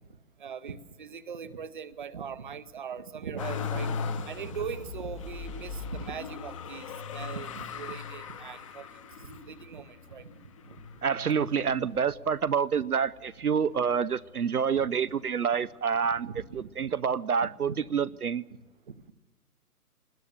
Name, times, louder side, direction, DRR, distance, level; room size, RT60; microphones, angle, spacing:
voice 1, 0.4-6.9 7.1-8.9 9.1-10.3 10.7-10.8 11.4-11.5 14.7-15.2 16.2-16.9 17.7-17.8 18.1-18.2 18.9-19.0, right 6 dB, 30° right, 16 dB, 0.8 m, -40 dB
Motor vehicle (road), 3.4-12.5 13.1-13.9 14.2-15.3 16.3-16.4, left 5 dB, 20° left, 1.1 m, -39 dB
voice 2, 11.0-16.3 16.5-18.4, right 7 dB, 75° right, 17 dB, 0.7 m, -27 dB
25.0 x 20.5 x 7.0 m, 1.2 s
figure-of-eight pair, 140°, 46 cm